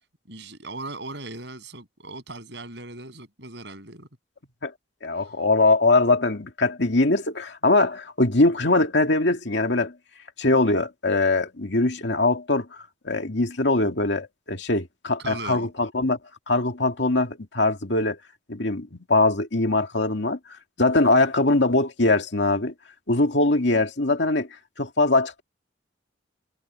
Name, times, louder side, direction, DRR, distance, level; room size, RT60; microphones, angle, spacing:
voice 1, 0.3-4.1 5.2-5.3 15.2-15.7, right 2 dB, 60° right, 7.6 m, -38 dB
voice 2, 5.0-9.9 10.4-12.7 13.0-16.2 16.5-18.2 18.5-20.4 20.8-22.7 23.1-24.5 24.8-25.4, left 2 dB, 65° left, 2.4 m, -22 dB
head